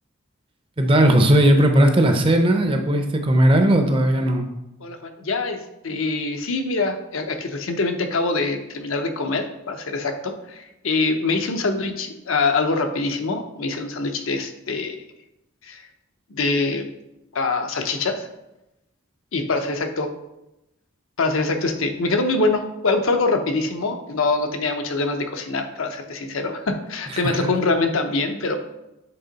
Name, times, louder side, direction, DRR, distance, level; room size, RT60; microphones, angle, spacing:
voice 1, 0.8-4.5 27.2-27.5, right 1 dB, 25° right, 5 dB, 0.5 m, -17 dB
voice 2, 4.8-15.0 15.6-15.8 16.3-16.8 17.3-18.3 19.3-20.1 21.2-28.6, left 3 dB, 75° left, 5 dB, 0.7 m, -24 dB
7.8 x 3.6 x 4.0 m, 0.91 s
head